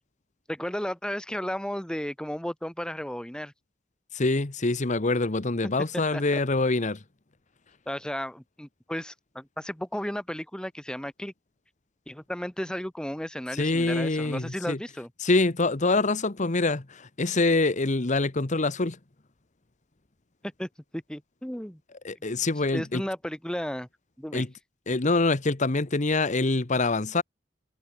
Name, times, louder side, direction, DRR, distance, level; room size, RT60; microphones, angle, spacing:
voice 1, 0.5-3.5 6.1-6.2 7.9-11.3 12.1-15.1 20.6-21.8 22.7-23.9 24.2-24.5, equal, 5° left, 1.2 m, -34 dB
voice 2, 4.1-7.0 13.5-14.8 15.2-19.0 22.0-23.0 24.3-24.5 24.9-27.2, left 3 dB, 40° left, 1.1 m, -25 dB
head